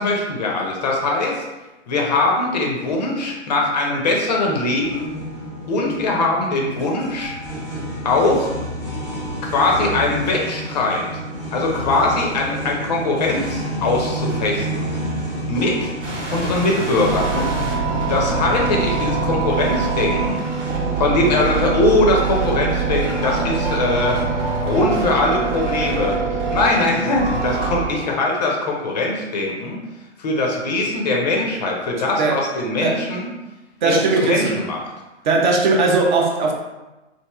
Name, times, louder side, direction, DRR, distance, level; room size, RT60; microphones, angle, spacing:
voice 1, 0.0-1.4 1.9-5.1 5.7-7.3 8.0-8.5 9.4-11.1 11.5-14.9 15.5-15.9 16.3-17.6 18.1-20.4 21.0-24.3 24.6-26.2 26.5-29.8 30.2-33.3 33.8-34.8, left 2 dB, 35° left, 0 dB, 0.5 m, -21 dB
sound 1, 4.8-24.5, right 1 dB, ahead, 0.8 m, -30 dB
sound 2, 16.0-27.9, right 4 dB, 75° right, 1.1 m, -24 dB
voice 2, 33.8-34.6 35.2-36.5, right 3 dB, 40° right, 1 dB, 0.5 m, -18 dB
3.1 x 2.5 x 2.3 m, 1.1 s
figure-of-eight pair, 120°, 36 cm